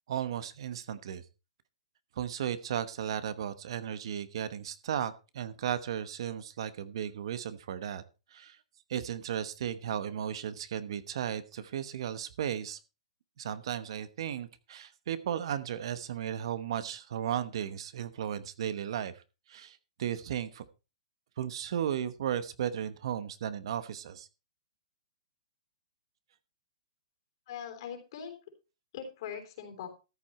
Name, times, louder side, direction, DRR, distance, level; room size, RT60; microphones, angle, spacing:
voice 1, 0.1-1.2 2.2-8.0 8.3-8.6 8.9-12.8 13.4-19.2 19.5-20.6 21.4-24.3, right 9 dB, 60° right, 14 dB, 1.0 m, -35 dB
voice 2, 27.5-28.3 28.9-29.9, left 8 dB, 45° left, 5 dB, 3.5 m, -41 dB
14.0 x 7.7 x 4.3 m, 0.31 s
hypercardioid pair, 160°, 3 cm